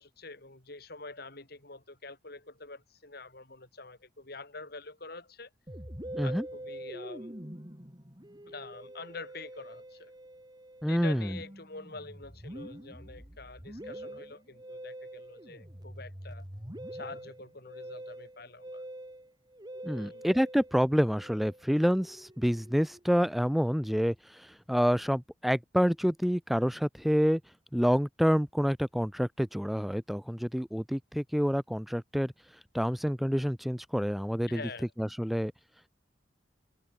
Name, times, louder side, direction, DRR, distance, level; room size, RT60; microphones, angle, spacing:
voice 1, 0.0-5.5 6.2-7.3 8.5-10.1 10.9-16.4 16.9-18.8 19.9-20.3 34.5-34.9, left 3 dB, 60° left, 4.3 m, -46 dB
Musical instrument, 5.7-23.3, right 1 dB, 25° right, 4.0 m, -45 dB
voice 2, 10.8-11.4 19.8-27.4 27.7-32.3 32.7-34.6 35.0-35.5, equal, ahead, 0.9 m, -28 dB
head